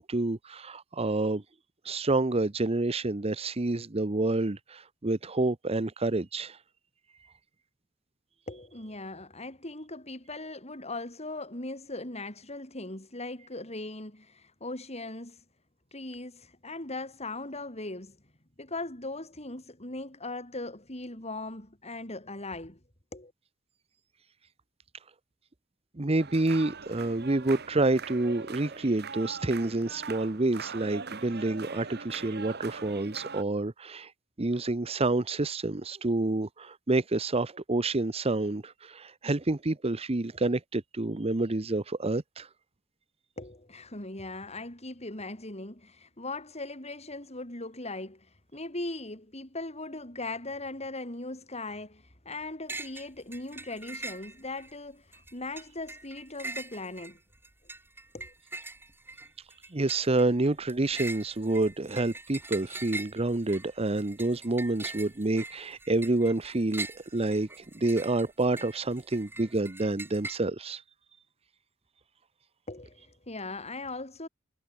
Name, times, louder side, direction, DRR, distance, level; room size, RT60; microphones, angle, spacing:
voice 1, 0.0-1.4 1.8-6.6 26.0-34.1 34.4-42.5 59.7-70.8, right 2 dB, 30° right, 0.9 m, -28 dB
voice 2, 8.5-15.4 15.9-18.2 18.6-22.8 23.1-23.3 43.4-57.2 58.1-58.3 72.7-74.3, left 2 dB, 35° left, 7.0 m, -39 dB
sound 1, 26.2-33.4, right 5 dB, 55° right, 2.5 m, -41 dB
sound 2, 52.7-53.1 53.3-54.7 55.1-70.4, right 2 dB, 10° right, 3.3 m, -42 dB
head